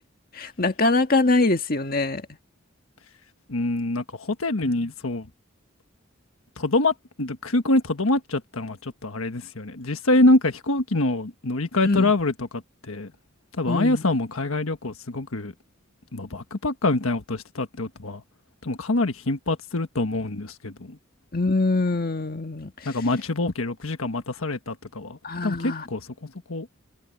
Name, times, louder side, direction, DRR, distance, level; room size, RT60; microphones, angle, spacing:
voice 1, 0.3-2.2 4.6-4.7 11.8-12.1 13.7-14.0 21.3-22.7 25.2-25.8, left 2 dB, 45° left, 1.8 m, -23 dB
voice 2, 3.5-5.3 6.6-12.5 12.8-13.1 13.6-15.5 16.1-18.2 18.6-21.0 22.8-26.7, left 2 dB, 90° left, 1.5 m, -25 dB
head